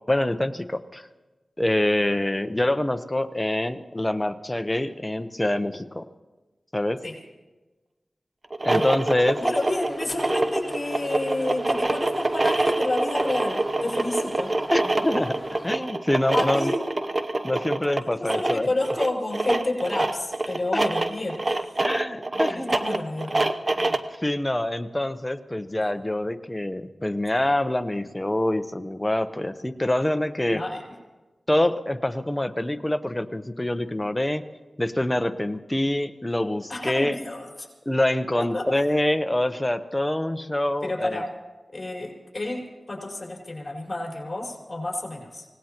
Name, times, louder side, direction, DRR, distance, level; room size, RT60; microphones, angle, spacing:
voice 1, 0.1-1.0 1.6-6.1 6.7-7.0 8.6-9.4 14.7-15.4 15.6-16.7 17.4-18.7 20.7-20.8 21.8-22.8 23.8-30.6 31.5-34.4 34.8-37.2 37.9-41.2, left 1 dB, 20° left, 9 dB, 0.9 m, -25 dB
sound 1, 8.4-24.1, right 2 dB, 45° right, 0.8 m, -26 dB
sound 2, 9.2-15.8, left 1 dB, ahead, 4.0 m, -42 dB
voice 2, 9.4-14.6 16.3-16.8 18.2-21.8 22.3-23.5 30.5-30.8 36.7-37.5 38.4-38.7 40.8-41.3 41.7-45.5, left 2 dB, 35° left, -3 dB, 5.0 m, -30 dB
25.5 x 18.5 x 3.0 m, 1.2 s
cardioid pair, 50°, 0 cm